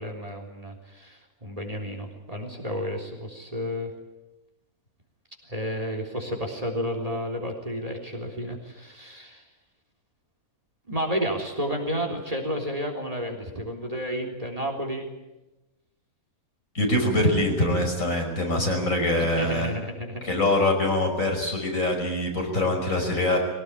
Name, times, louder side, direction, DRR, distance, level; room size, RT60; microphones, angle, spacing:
voice 1, 0.0-3.9 5.5-9.4 10.9-15.1 19.2-20.3, equal, 25° right, 3 dB, 3.8 m, -31 dB
voice 2, 16.7-19.8 20.2-23.4, left 1 dB, 65° left, 2 dB, 6.0 m, -24 dB
22.5 x 18.5 x 9.9 m, 1.0 s
omnidirectional pair, 1.5 m